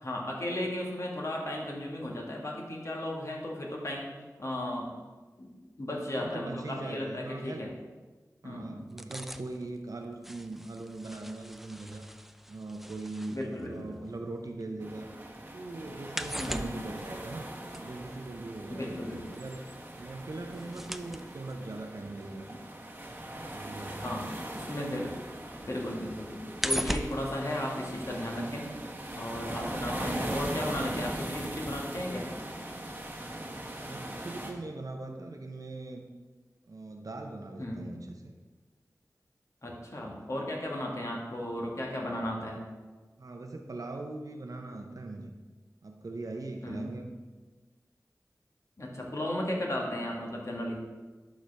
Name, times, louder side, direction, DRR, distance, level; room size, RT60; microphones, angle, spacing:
voice 1, 0.0-4.1 4.4-4.9 5.4-7.7 8.4-8.8 13.3-13.9 16.4-16.7 18.7-19.2 24.0-24.3 24.5-25.1 25.6-28.7 29.1-32.3 37.6-37.8 39.6-42.6 46.6-46.9 48.8-50.8, left 1 dB, 50° left, -2 dB, 1.7 m, -35 dB
voice 2, 6.2-7.7 8.4-12.1 12.5-15.1 15.5-17.5 17.8-19.0 19.3-19.7 20.0-22.5 22.8-23.0 23.5-24.2 33.8-36.0 36.7-38.3 43.2-45.3 45.8-47.1, right 2 dB, 65° right, 3 dB, 0.7 m, -41 dB
sound 1, 8.8-14.9 15.2-24.9 25.3-28.4 28.7-28.8, equal, 5° right, 0.4 m, -40 dB
sound 2, 14.8-34.5, right 1 dB, 30° right, 1.2 m, -40 dB
11.5 x 4.4 x 3.4 m, 1.3 s
wide cardioid pair, 45°, 6 cm